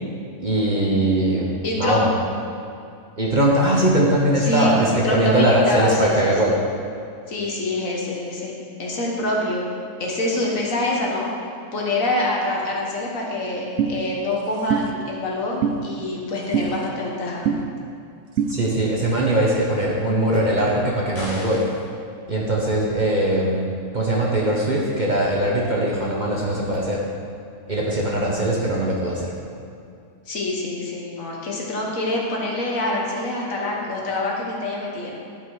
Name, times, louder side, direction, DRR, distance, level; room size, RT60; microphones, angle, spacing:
voice 1, 0.4-2.1 3.2-6.6 18.5-21.6 22.3-27.0 27.7-29.3, right 1 dB, 35° right, -3 dB, 1.1 m, -21 dB
voice 2, 1.6-2.1 4.4-4.7 5.0-6.5 7.3-8.5 8.8-9.7 10.0-11.3 11.7-17.5 30.3-35.1, left 2 dB, 65° left, -2 dB, 1.7 m, -26 dB
sound 1, 13.8-13.9 14.7-14.8 15.6-15.8 16.5-16.7 17.5-17.6 18.4-18.5, right 8 dB, 65° right, 0.8 m, -21 dB
sound 2, 21.1-21.9, equal, 45° left, 1.9 m, -35 dB
11.0 x 5.4 x 4.8 m, 2.5 s
omnidirectional pair, 1.5 m